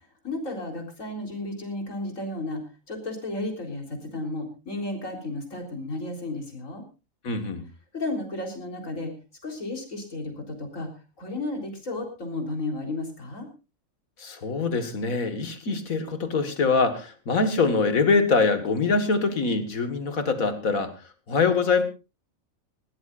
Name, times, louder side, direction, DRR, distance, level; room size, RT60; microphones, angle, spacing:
voice 1, 0.2-2.6 2.9-6.8 7.9-9.1 9.4-10.9 11.2-13.5, left 2 dB, 70° left, 3 dB, 4.2 m, -33 dB
voice 2, 7.2-7.6 14.2-20.9 21.3-21.8, left 4 dB, 85° left, 9 dB, 2.2 m, -24 dB
20.5 x 17.0 x 2.5 m, 0.29 s
omnidirectional pair, 1.4 m